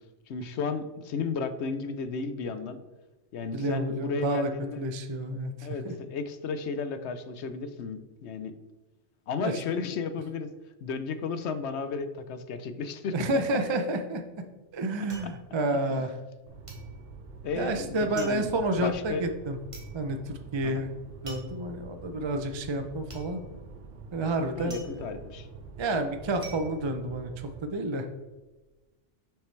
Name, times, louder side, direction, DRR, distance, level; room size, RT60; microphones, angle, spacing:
voice 1, 0.3-2.8 3.3-4.8 5.6-8.5 9.3-10.5 10.8-13.1 16.0-16.1 17.4-18.5 18.8-19.3 20.6-20.8 24.6-25.5, left 5 dB, 70° left, 10 dB, 0.9 m, -33 dB
voice 2, 3.5-4.5 4.8-5.9 9.4-9.5 13.1-14.2 14.7-16.1 17.5-19.6 19.9-20.9 21.2-23.4 24.1-25.0 25.8-28.1, right 2 dB, 45° right, 6 dB, 0.4 m, -30 dB
sound 1, 14.0-16.4 16.7-27.8 28.1-28.7, right 2 dB, 30° right, 1.2 m, -47 dB
sound 2, 16.5-27.6, right 4 dB, 90° right, 1.2 m, -46 dB
6.6 x 6.4 x 3.2 m, 1.1 s
omnidirectional pair, 1.2 m